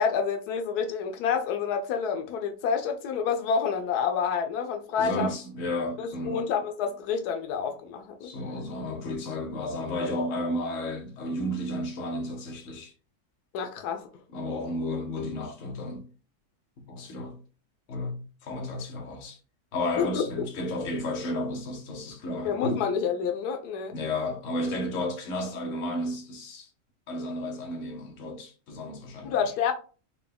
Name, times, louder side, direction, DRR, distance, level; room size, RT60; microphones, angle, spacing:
voice 1, 0.0-5.3 6.0-8.3 13.5-14.1 20.0-20.2 22.4-23.9 29.2-29.7, left 6 dB, 85° left, 1.1 m, -28 dB
voice 2, 5.0-6.4 8.2-12.9 14.3-16.1 16.9-17.4 17.9-19.4 19.7-22.9 23.9-26.7 27.1-29.3, left 1 dB, 60° left, 1.2 m, -32 dB
4.4 x 2.2 x 3.4 m
omnidirectional pair, 1.6 m